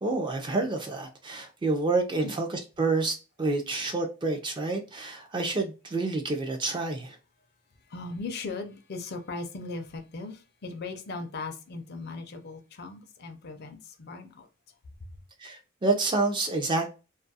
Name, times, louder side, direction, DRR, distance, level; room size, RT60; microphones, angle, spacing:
voice 1, 0.0-7.2 15.4-16.9, right 3 dB, 20° right, 0.3 m, -28 dB
voice 2, 7.9-14.5, left 3 dB, 45° left, 0.4 m, -38 dB
2.3 x 2.2 x 2.6 m
head